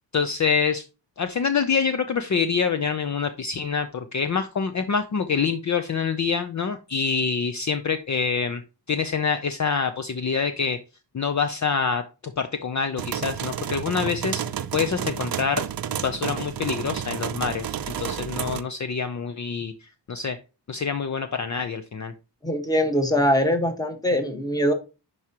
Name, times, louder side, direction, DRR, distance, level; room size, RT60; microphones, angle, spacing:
voice 1, 0.1-0.8 1.2-8.6 8.9-10.8 11.1-15.7 16.0-17.7 18.0-20.4 20.7-22.1, left 5 dB, 45° left, 9 dB, 0.6 m, -26 dB
sound 1, 13.0-18.6, right 9 dB, 55° right, 0.6 m, -30 dB
voice 2, 22.4-24.7, equal, 10° left, 5 dB, 1.4 m, -22 dB
10.5 x 4.8 x 2.9 m, 0.30 s
wide cardioid pair, 125°, 42 cm